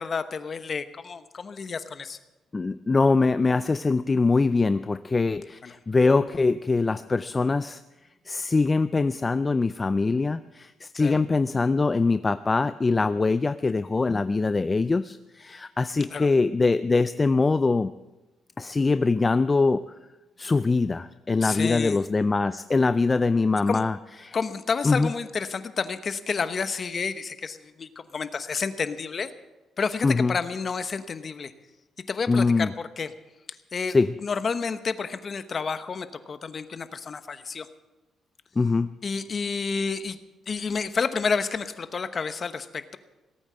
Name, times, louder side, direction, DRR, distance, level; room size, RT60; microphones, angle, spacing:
voice 1, 0.0-2.2 5.6-5.8 11.0-11.2 16.1-16.3 21.4-22.0 23.7-23.8 24.3-29.3 29.8-31.5 32.1-33.1 33.7-34.0 34.2-37.7 39.0-40.2 40.5-43.0, left 5 dB, 35° left, 11 dB, 1.0 m, -30 dB
voice 2, 2.5-7.8 8.3-17.9 18.6-19.9 20.4-24.0 24.2-24.4 24.8-25.1 30.0-30.4 32.3-32.7 33.9-34.1 38.6-38.9, left 3 dB, 20° left, 13 dB, 0.4 m, -23 dB
18.5 x 8.8 x 7.6 m, 1.1 s
cardioid pair, 115°, 0 cm